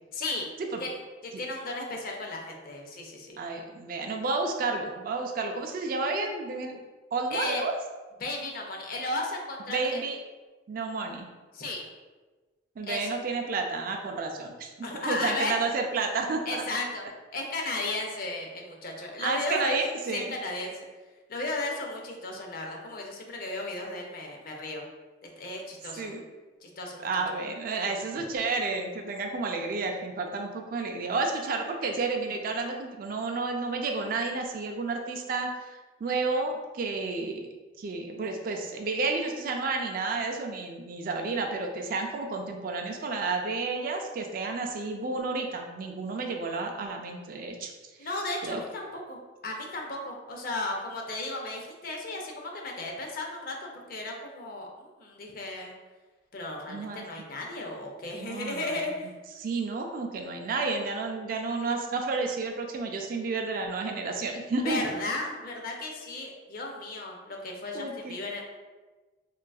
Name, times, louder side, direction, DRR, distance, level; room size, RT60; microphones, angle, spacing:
voice 1, 0.1-0.5 0.8-1.0 1.2-3.4 7.3-7.7 8.2-10.0 11.5-11.9 12.9-13.1 14.8-15.6 16.5-17.0 17.3-19.8 20.1-20.7 21.3-24.8 25.2-26.1 26.6-27.2 48.0-55.7 56.3-59.2 64.6-68.4, left 2 dB, 50° left, 1 dB, 0.5 m, -35 dB
voice 2, 3.4-6.8 7.1-7.7 9.7-10.2 10.7-11.3 12.8-16.6 19.2-20.3 26.0-26.2 27.0-35.5 36.0-37.4 37.8-47.7 48.4-48.6 56.7-57.0 58.2-58.8 59.4-64.8 67.7-68.1, right 3 dB, 50° right, 3 dB, 0.3 m, -31 dB
3.7 x 2.4 x 2.3 m, 1.2 s
head